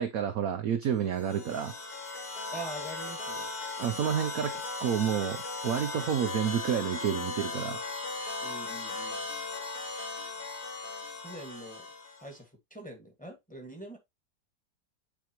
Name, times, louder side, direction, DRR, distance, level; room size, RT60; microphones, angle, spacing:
voice 1, 0.0-1.7 3.8-7.8, right 8 dB, 65° right, 0.9 m, -30 dB
sound 1, 1.1-12.3, left 3 dB, 60° left, 2.4 m, -37 dB
voice 2, 2.5-3.5 8.4-9.2 11.2-11.9 12.2-14.0, right 2 dB, 5° left, 1.7 m, -44 dB
8.8 x 4.4 x 3.0 m
omnidirectional pair, 2.0 m